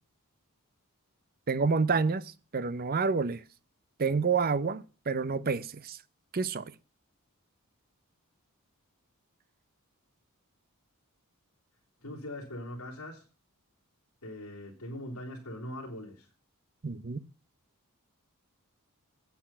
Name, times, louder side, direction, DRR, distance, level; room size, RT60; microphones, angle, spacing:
voice 1, 1.5-2.2 2.5-3.4 4.0-6.0 6.3-6.6 16.8-17.2, right 4 dB, 40° right, 0.7 m, -28 dB
voice 2, 12.0-13.3 14.2-16.3, left 1 dB, 75° left, 3.0 m, -41 dB
8.7 x 8.3 x 5.5 m
head